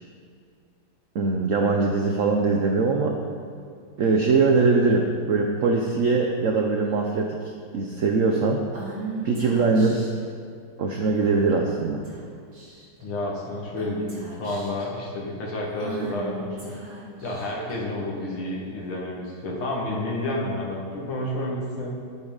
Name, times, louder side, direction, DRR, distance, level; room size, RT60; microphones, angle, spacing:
voice 1, 1.1-3.2 4.0-7.4 7.7-8.6 9.2-10.1 10.8-12.0, right 4 dB, 65° right, 2 dB, 0.8 m, -22 dB
Female speech woman speaking / Whispering, 8.7-10.2 11.2-11.6 12.0-12.2 12.5-13.0 13.8-14.9 15.8-17.8, right 3 dB, 45° right, 2.7 m, -37 dB
voice 2, 13.0-16.7 17.2-21.9, left 1 dB, 90° left, -3 dB, 2.7 m, -30 dB
12.0 x 9.7 x 4.0 m, 2.2 s
omnidirectional pair, 2.2 m